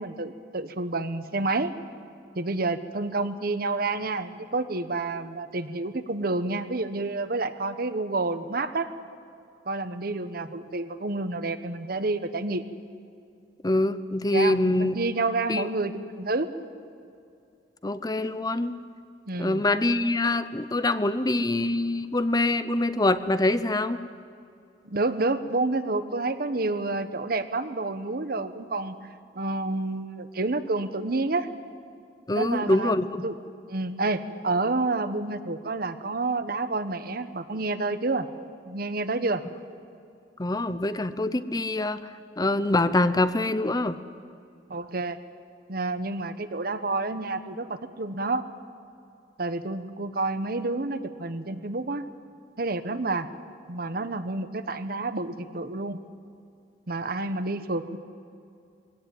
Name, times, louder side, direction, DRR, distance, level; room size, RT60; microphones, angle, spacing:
voice 1, 0.0-1.7 2.3-8.9 9.7-12.6 14.3-16.5 19.3-19.6 24.8-29.0 29.3-31.5 32.3-32.9 33.2-33.4 33.7-38.3 38.6-39.4 44.7-45.2 45.7-48.4 49.4-52.0 52.6-53.3 53.7-56.0 56.9-58.0, right 3 dB, 60° right, 11 dB, 1.1 m, -29 dB
voice 2, 13.6-15.0 15.5-15.7 17.8-18.7 19.4-24.0 32.3-33.1 40.4-42.0 42.4-44.0, left 2 dB, 20° left, 12 dB, 0.7 m, -24 dB
21.5 x 17.5 x 9.2 m, 2.5 s
head